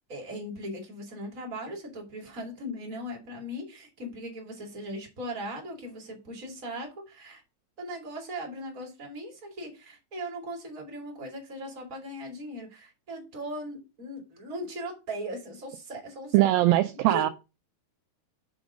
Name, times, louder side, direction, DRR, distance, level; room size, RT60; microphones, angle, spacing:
voice 1, 0.1-7.4 7.8-16.5 16.9-17.3, equal, 25° right, 2.1 m, -38 dB
voice 2, 16.3-17.3, right 16 dB, 85° right, 2.0 m, -21 dB
7.1 x 3.8 x 6.1 m
omnidirectional pair, 4.6 m